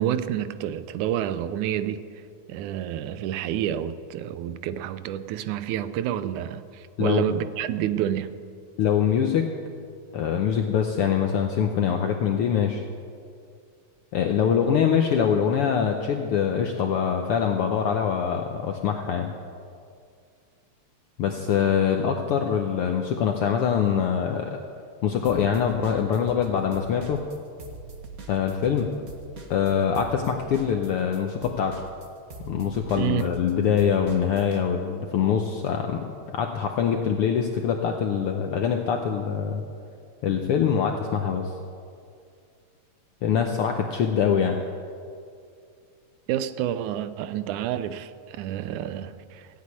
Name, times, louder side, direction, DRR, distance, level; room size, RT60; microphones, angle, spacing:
voice 1, 0.0-2.1 2.5-8.4 33.0-33.3 46.3-49.5, right 11 dB, 85° right, 2.1 m, -29 dB
voice 2, 7.0-7.4 8.8-9.5 10.1-12.8 14.1-19.3 21.2-24.6 25.0-27.2 28.3-28.9 29.5-31.7 32.4-39.6 40.2-41.5 43.2-44.6, left 7 dB, 75° left, 1.3 m, -24 dB
sound 1, 25.2-26.5 26.7-34.6, right 3 dB, 45° right, 1.2 m, -42 dB
16.0 x 8.4 x 9.5 m
omnidirectional pair, 3.4 m